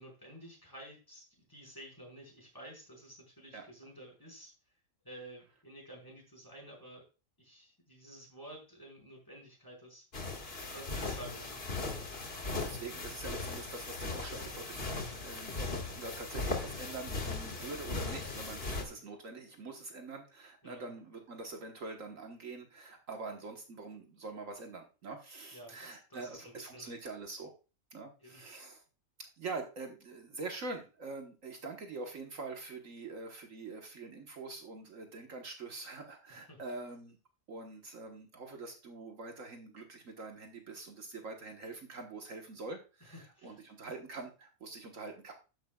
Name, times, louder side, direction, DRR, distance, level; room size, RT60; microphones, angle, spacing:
voice 1, 0.0-4.5 5.0-7.0 7.4-10.1 10.6-11.6 18.6-19.0 20.6-20.9 25.5-26.9 28.2-28.4 36.5-36.6 43.0-43.6, right 1 dB, 15° left, -1 dB, 5.0 m, -51 dB
sound 1, 10.1-18.8, left 3 dB, 45° left, 2.1 m, -38 dB
voice 2, 12.2-14.8 15.1-27.6 27.9-28.8 29.2-37.2 37.5-45.3, right 3 dB, 65° right, 3 dB, 1.6 m, -45 dB
12.5 x 10.0 x 2.3 m, 0.32 s
omnidirectional pair, 1.5 m